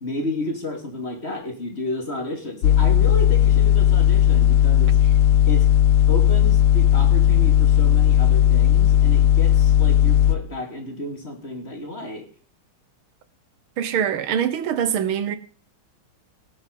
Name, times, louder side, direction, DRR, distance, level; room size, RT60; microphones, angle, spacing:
voice 1, 0.0-5.0 5.5-5.6 6.1-12.3, left 1 dB, 30° left, 3.0 m, -31 dB
sound 1, 2.6-10.4, left 10 dB, 80° left, 1.8 m, -16 dB
voice 2, 13.8-15.4, right 9 dB, 75° right, 1.9 m, -23 dB
18.5 x 8.3 x 5.4 m
omnidirectional pair, 2.4 m